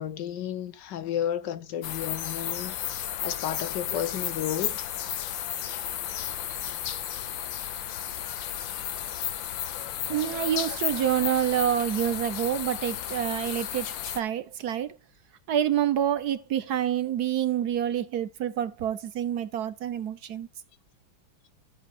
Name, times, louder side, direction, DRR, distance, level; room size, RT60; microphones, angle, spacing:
voice 1, 0.0-4.9, left 10 dB, 70° left, 1.4 m, -32 dB
sound 1, 1.8-14.2, left 11 dB, 90° left, 1.7 m, -33 dB
voice 2, 10.1-15.0 15.5-20.5, right 10 dB, 60° right, 1.3 m, -27 dB
14.0 x 8.0 x 2.3 m
omnidirectional pair, 2.0 m